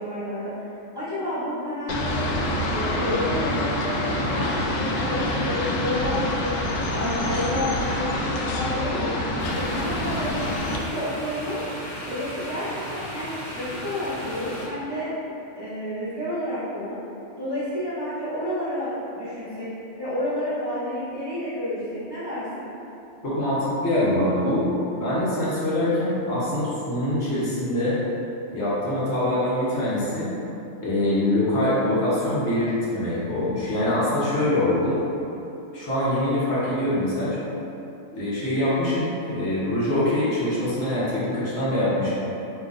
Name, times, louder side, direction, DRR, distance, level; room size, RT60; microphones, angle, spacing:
voice 1, 0.0-2.3 2.7-6.5 6.9-9.3 9.5-11.6 12.0-15.1 15.5-17.0 17.4-19.7 20.0-22.7, left 1 dB, 20° right, -13 dB, 0.9 m, -30 dB
sound 1, 1.9-10.8, left 1 dB, 80° left, 0.9 m, -26 dB
sound 2, 9.4-14.7, left 1 dB, 45° left, 0.7 m, -36 dB
voice 2, 23.2-28.0 28.5-30.3 30.8-35.0 35.7-37.4 38.1-42.1, left 1 dB, 60° left, -9 dB, 1.3 m, -24 dB
3.6 x 3.0 x 3.8 m, 2.9 s
omnidirectional pair, 1.3 m